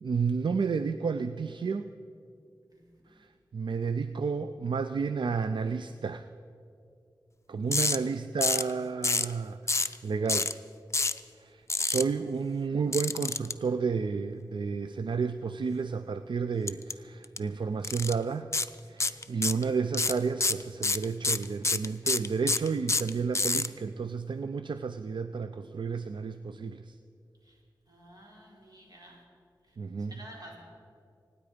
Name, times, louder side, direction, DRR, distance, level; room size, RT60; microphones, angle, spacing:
voice 1, 0.0-1.9 3.1-6.3 7.5-10.5 11.3-18.5 18.9-27.0 29.8-30.2, right 5 dB, 75° right, 11 dB, 0.4 m, -31 dB
sound 1, 7.7-8.0 8.4-8.7 9.0-9.3 9.7-10.0 10.3-10.5 10.9-11.2 11.7-12.0 12.9-13.5 16.7-16.9 17.2-17.4 17.8-18.1 18.5-18.7 19.0-19.6 19.9-23.7, left 3 dB, 35° left, 0.6 m, -27 dB
voice 2, 27.9-29.2 30.1-30.6, equal, 50° right, -3 dB, 4.8 m, -50 dB
25.0 x 9.7 x 5.1 m, 2.5 s
wide cardioid pair, 60°, 8 cm